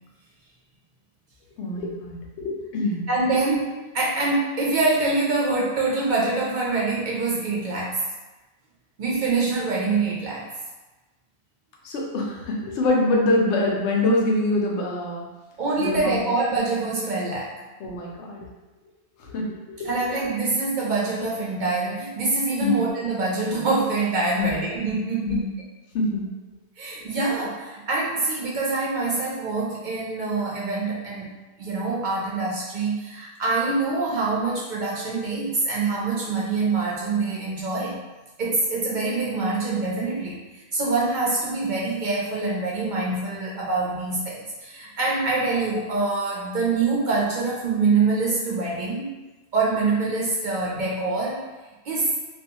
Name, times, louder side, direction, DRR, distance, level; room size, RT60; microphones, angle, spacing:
voice 1, 1.6-3.1 11.8-15.2 15.8-16.2 17.8-18.5 19.2-19.4 19.8-19.9 22.6-22.8 24.4-24.6 25.3-25.5 25.9-26.3, left 2 dB, 90° left, -1 dB, 0.9 m, -24 dB
voice 2, 3.1-8.0 9.0-10.5 15.6-17.5 19.8-25.4 26.8-31.3 31.6-38.0 38.4-40.4 40.7-44.3 44.6-49.1 49.5-51.4 51.8-52.2, right 3 dB, 55° right, -5 dB, 0.5 m, -25 dB
2.4 x 2.3 x 2.8 m, 1.1 s
omnidirectional pair, 1.1 m